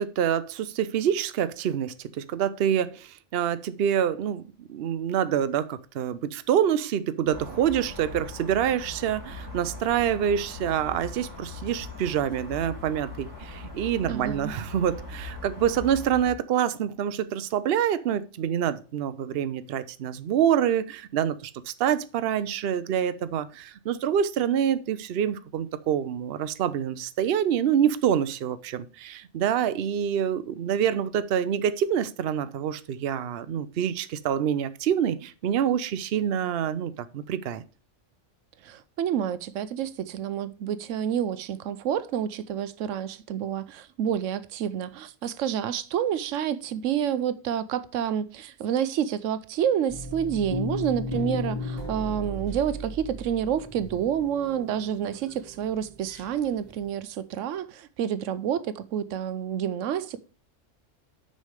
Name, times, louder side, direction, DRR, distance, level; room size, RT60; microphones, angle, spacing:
voice 1, 0.0-37.6, right 9 dB, 60° right, 0.8 m, -26 dB
sound 1, 7.3-16.3, left 2 dB, 15° left, 2.6 m, -40 dB
voice 2, 14.1-14.5 38.6-60.2, right 9 dB, 90° right, 1.0 m, -29 dB
sound 2, 49.9-56.3 56.8-56.9, left 1 dB, 35° right, 2.3 m, -35 dB
6.4 x 5.5 x 6.5 m
omnidirectional pair, 1.3 m